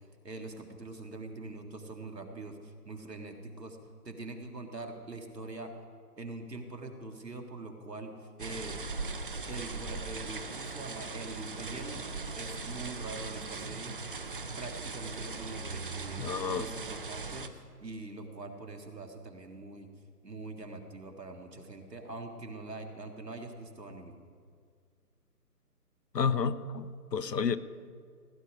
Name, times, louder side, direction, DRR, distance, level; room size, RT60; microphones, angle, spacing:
voice 1, 0.2-3.8 4.0-5.7 6.2-8.8 9.5-12.1 12.3-14.0 14.6-19.9 20.2-24.1, right 2 dB, 85° right, 4 dB, 1.9 m, -43 dB
sound 1, 8.4-17.5, right 3 dB, 35° right, 0.6 m, -39 dB
voice 2, 16.2-16.7 26.1-27.6, left 6 dB, 80° left, 15 dB, 0.8 m, -30 dB
16.5 x 9.7 x 5.0 m, 2.1 s
figure-of-eight pair, 150°, 48 cm